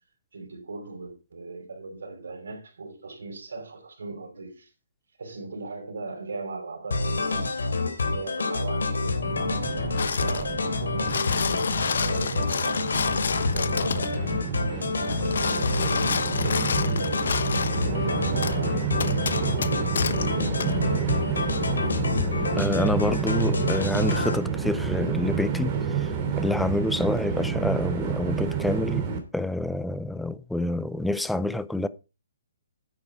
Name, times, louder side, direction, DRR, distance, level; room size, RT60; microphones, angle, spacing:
voice 1, 0.3-4.7 5.2-7.5 8.1-14.4 15.0-17.2 17.7-20.7, right 3 dB, 80° right, 4.8 m, -39 dB
sound 1, 6.9-24.4, left 3 dB, 90° left, 3.2 m, -28 dB
Train, 9.2-29.2, right 6 dB, 25° right, 3.0 m, -30 dB
sound 2, 10.0-10.5 10.9-14.2 15.0-17.9 18.4-18.6 19.0-20.3 20.6-20.7, left 6 dB, 70° left, 1.1 m, -30 dB
voice 2, 22.6-29.1 29.3-31.9, left 1 dB, ahead, 0.4 m, -28 dB
9.8 x 8.9 x 4.9 m
hypercardioid pair, 160°, 0 cm